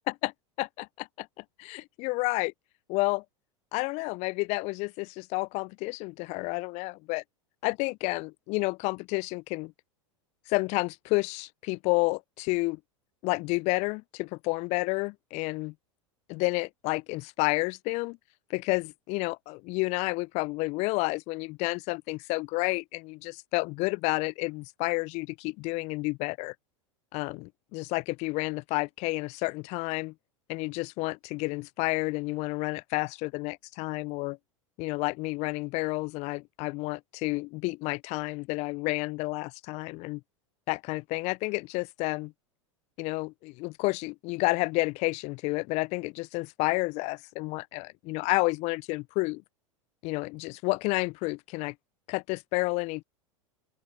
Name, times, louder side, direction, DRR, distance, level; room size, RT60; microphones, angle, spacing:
voice 1, 0.6-2.5 2.9-3.2 3.7-7.2 7.6-9.7 10.5-12.8 13.2-15.7 16.3-18.2 18.5-26.5 27.1-30.1 30.5-34.4 34.8-40.2 40.7-42.3 43.0-49.4 50.0-51.7 52.1-53.0, left 25 dB, 45° left, 0.5 m, -30 dB
open air
figure-of-eight pair, 85°, 16 cm